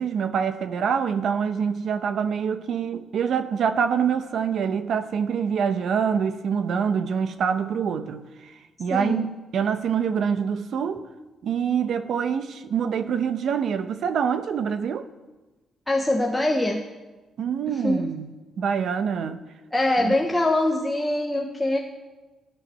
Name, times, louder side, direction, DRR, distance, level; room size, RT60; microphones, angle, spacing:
voice 1, 0.0-8.5 8.8-11.0 11.4-15.1 17.4-18.3 18.6-19.4 20.0-20.1, right 7 dB, 55° right, 0.8 m, -25 dB
voice 2, 8.9-9.3 15.9-16.8 17.7-18.1 19.7-21.8, left 1 dB, 5° left, 0.8 m, -23 dB
14.0 x 10.0 x 5.5 m
cardioid pair, 165°, 0 cm